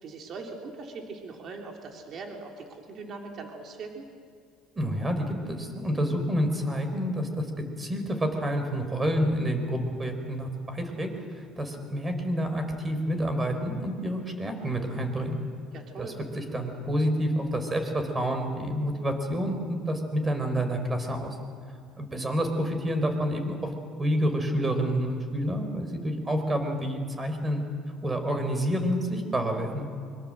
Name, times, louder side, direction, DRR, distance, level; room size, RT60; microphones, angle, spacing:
voice 1, 0.0-4.1 15.7-16.2, right 4 dB, 45° right, 2 dB, 3.5 m, -41 dB
voice 2, 4.7-7.5 7.8-11.1 11.3-15.4 16.0-21.4 22.0-23.7 24.0-27.6 28.0-29.8, equal, 20° right, 6 dB, 4.7 m, -28 dB
24.5 x 24.0 x 7.9 m, 2.2 s
cardioid pair, 120°, 0 cm